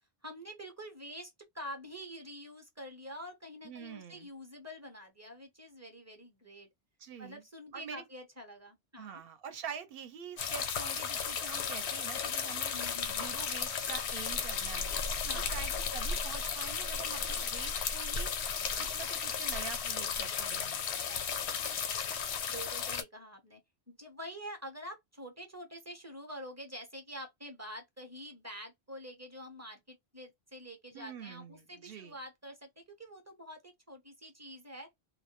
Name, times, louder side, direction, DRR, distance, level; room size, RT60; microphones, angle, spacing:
voice 1, 0.2-6.7 7.2-9.2 12.7-13.2 15.3-15.6 20.9-21.3 21.6-22.2 22.5-23.6 23.9-34.9, equal, 20° right, 0.5 m, -47 dB
voice 2, 3.6-4.3 7.0-7.4 7.7-8.0 9.0-14.9 15.2-18.5 18.8-21.0 30.9-32.2, right 7 dB, 65° right, 0.8 m, -46 dB
sound 1, 10.4-23.0, left 6 dB, 90° left, 0.9 m, -34 dB
2.2 x 2.1 x 2.9 m
omnidirectional pair, 1.1 m